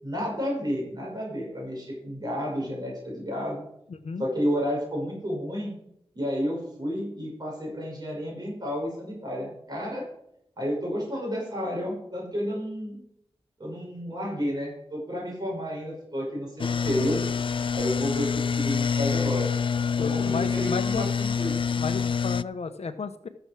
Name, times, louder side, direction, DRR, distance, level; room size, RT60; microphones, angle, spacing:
voice 1, 0.0-3.6 4.2-5.7 6.1-10.1 10.6-13.0 13.6-17.2 17.7-19.5 19.9-21.6, equal, 40° right, -3 dB, 5.9 m, -31 dB
voice 2, 3.9-4.3 20.0-21.1 21.7-23.3, left 5 dB, 90° left, 10 dB, 1.0 m, -33 dB
sound 1, 16.6-22.4, left 6 dB, 55° left, 0.4 m, -26 dB
13.5 x 7.1 x 6.1 m, 0.75 s
wide cardioid pair, 105°, 11 cm